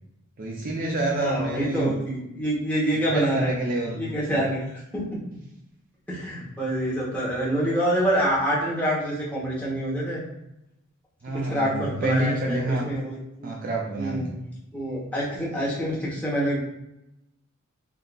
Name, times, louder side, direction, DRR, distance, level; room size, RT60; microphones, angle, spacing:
voice 1, 0.4-2.0 2.9-4.4 11.2-12.9 13.4-14.4, right 2 dB, 45° right, 0 dB, 0.4 m, -28 dB
voice 2, 1.1-3.5 4.0-4.7 4.9-5.0 6.1-10.2 11.5-12.6 12.8-13.5 14.0-14.3 14.7-16.6, equal, 5° left, -8 dB, 1.1 m, -26 dB
3.5 x 2.7 x 2.4 m, 0.87 s
head